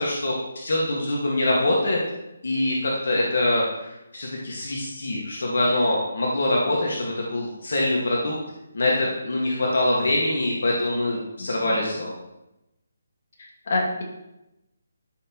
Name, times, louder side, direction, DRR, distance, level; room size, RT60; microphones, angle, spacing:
voice 1, 0.0-2.0 2.4-8.4 8.7-12.1, left 1 dB, 75° left, -3 dB, 1.8 m, -24 dB
voice 2, 11.4-11.8 13.4-14.0, left 2 dB, 55° left, -2 dB, 2.5 m, -28 dB
12.5 x 5.9 x 3.1 m, 0.92 s
hypercardioid pair, 165°, 0 cm